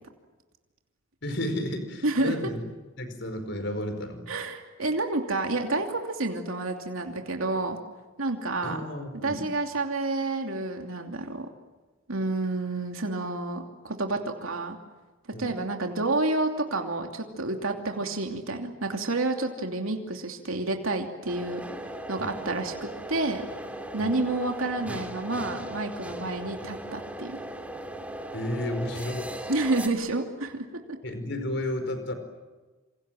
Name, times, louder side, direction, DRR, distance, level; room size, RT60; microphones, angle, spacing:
voice 1, 1.2-2.6 3.0-4.2 8.6-9.4 15.3-15.5 22.2-22.3 24.0-24.1 28.3-29.3 31.0-32.1, left 1 dB, 60° left, 8 dB, 4.9 m, -32 dB
voice 2, 2.0-2.5 4.3-7.8 8.2-8.8 9.2-11.5 12.1-14.8 15.4-23.4 23.9-27.4 29.5-31.0, right 2 dB, 90° right, 3 dB, 2.8 m, -29 dB
sound 1, 21.3-29.9, right 1 dB, 5° right, 2.5 m, -38 dB
28.0 x 26.5 x 7.7 m, 1.2 s
head